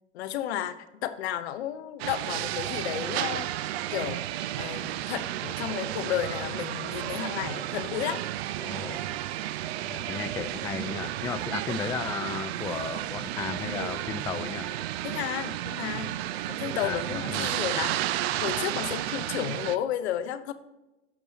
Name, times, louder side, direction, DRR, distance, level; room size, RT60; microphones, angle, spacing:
voice 1, 0.1-4.2 4.6-8.2 15.0-16.1 16.5-18.0 18.4-20.5, left 11 dB, 65° left, 11 dB, 1.0 m, -32 dB
sound 1, 2.0-19.8, right 14 dB, 60° right, 0.6 m, -32 dB
voice 2, 8.6-9.0 9.8-14.7 16.8-17.5, left 7 dB, 10° left, 12 dB, 0.3 m, -35 dB
15.5 x 6.1 x 2.8 m, 1.0 s
hypercardioid pair, 110°, 35 cm